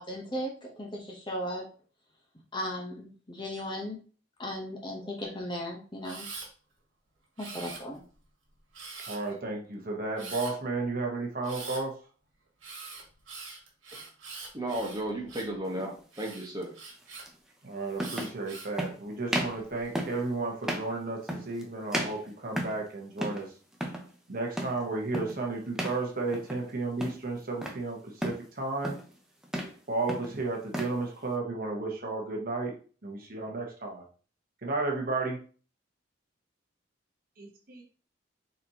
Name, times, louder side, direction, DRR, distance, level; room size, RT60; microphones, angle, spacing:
voice 1, 0.0-1.7 2.5-4.0 4.4-6.3 7.4-8.0, equal, 25° left, -1 dB, 0.9 m, -36 dB
Camera, 6.0-6.5 7.4-8.1 8.7-9.3 10.2-10.5 11.4-11.8 12.6-15.6 16.1-17.2 18.0-18.8 19.4-19.9, right 4 dB, 80° right, 1.6 m, -43 dB
voice 2, 9.1-11.9 17.6-23.5 24.3-28.9 29.9-32.7 33.0-34.0 34.6-35.4 37.4-37.8, right 3 dB, 45° right, 0 dB, 1.0 m, -33 dB
voice 3, 14.5-16.8, right 1 dB, 20° right, -1 dB, 1.1 m, -34 dB
sound 1, 15.7-15.9 17.3-17.4 17.9-18.4 18.8-19.0 19.3-19.6 20.0-20.2 20.6-20.9 21.3-21.6 21.9-22.9 23.2-23.5 23.7-24.1 24.6-24.8 25.1-25.4 25.8-26.0 26.3-26.7 27.0-27.8 28.2-28.5 28.8-29.1 29.4-29.8 30.1-31.0, equal, 5° right, 0.5 m, -34 dB
4.1 x 4.1 x 2.8 m, 0.40 s
head